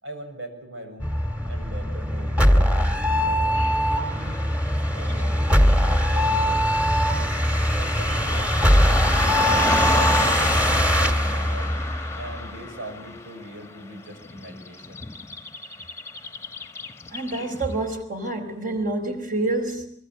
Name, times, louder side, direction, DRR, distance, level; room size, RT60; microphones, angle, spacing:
voice 1, 0.0-1.1 1.5-3.6 3.9-4.5 4.9-7.3 7.7-9.3 9.8-11.7 12.2-15.0, right 1 dB, 90° right, 5 dB, 7.3 m, -40 dB
sound 1, 1.0-12.5, equal, 10° right, 2.0 m, -21 dB
Car passing by / Traffic noise roadway noise, 3.5-17.8, left 3 dB, 15° left, 1.2 m, -32 dB
voice 2, 17.1-19.9, right 2 dB, 45° right, 5 dB, 4.8 m, -27 dB
24.0 x 23.0 x 7.7 m, 0.65 s
head